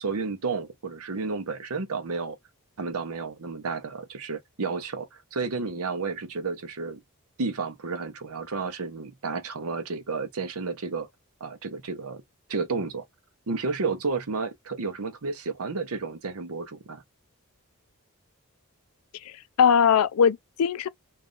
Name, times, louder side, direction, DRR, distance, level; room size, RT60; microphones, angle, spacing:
voice 1, 0.0-2.4 2.8-7.0 7.4-11.1 11.4-12.2 12.5-13.0 13.5-17.0, right 4 dB, 75° right, 0.8 m, -31 dB
voice 2, 19.2-20.9, left 7 dB, 75° left, 0.4 m, -21 dB
3.2 x 2.4 x 3.8 m
head